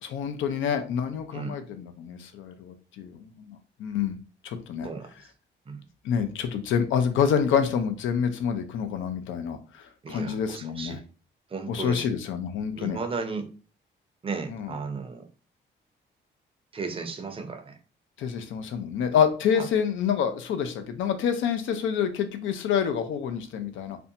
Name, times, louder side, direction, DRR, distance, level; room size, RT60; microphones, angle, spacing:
voice 1, 0.0-4.2 4.4-4.9 6.0-11.0 11.7-13.0 14.5-14.7 18.2-24.0, left 7 dB, 75° left, 8 dB, 0.5 m, -27 dB
voice 2, 10.0-11.0 11.5-12.1 12.7-13.5 14.2-15.3 16.7-17.8 19.6-19.7, right 4 dB, 25° right, 7 dB, 0.5 m, -34 dB
2.6 x 2.2 x 2.6 m, 0.36 s
cardioid pair, 90°, 20 cm